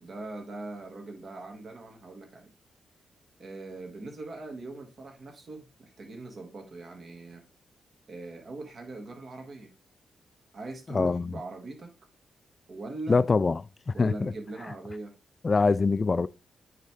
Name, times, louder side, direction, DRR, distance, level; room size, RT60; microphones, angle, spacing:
voice 1, 0.0-2.5 3.4-7.4 8.1-9.7 10.5-11.9 12.7-13.2 13.9-15.1, right 2 dB, 55° right, 1.7 m, -41 dB
voice 2, 10.9-11.3 13.1-14.3 15.4-16.3, left 4 dB, 40° left, 0.3 m, -24 dB
9.4 x 3.3 x 3.5 m
hypercardioid pair, 45°, 0 cm